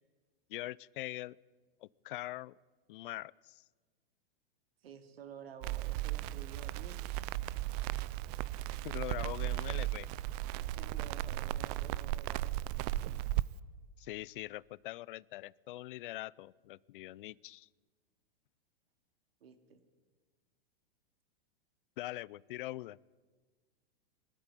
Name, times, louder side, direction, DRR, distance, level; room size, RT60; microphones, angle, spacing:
voice 1, 0.5-1.4 1.8-2.6 2.9-3.6 8.8-10.1 14.0-17.7 22.0-23.0, left 17 dB, 60° left, 24 dB, 0.5 m, -43 dB
voice 2, 4.8-7.3 10.6-12.6 19.4-19.8, right 7 dB, 85° right, 8 dB, 2.6 m, -52 dB
Crackle, 5.6-13.4, right 16 dB, 40° right, 0.6 m, -36 dB
21.5 x 13.0 x 9.9 m, 1.4 s
hypercardioid pair, 135°, 29 cm